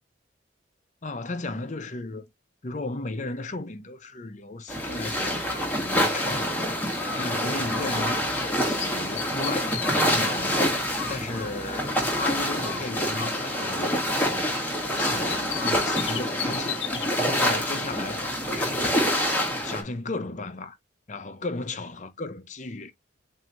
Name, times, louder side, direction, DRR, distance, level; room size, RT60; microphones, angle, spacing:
voice 1, 1.0-2.2 2.6-6.8 7.1-10.8 11.1-14.6 15.0-16.8 17.1-19.1 19.6-20.8 21.1-22.9, left 2 dB, 40° left, 0.7 m, -35 dB
sound 1, 4.7-19.8, equal, 10° left, 1.4 m, -26 dB
Bird, 6.9-8.5 8.8-12.2 12.6-14.7 15.0-17.1, left 9 dB, 80° left, 0.9 m, -37 dB
7.3 x 2.8 x 2.5 m
head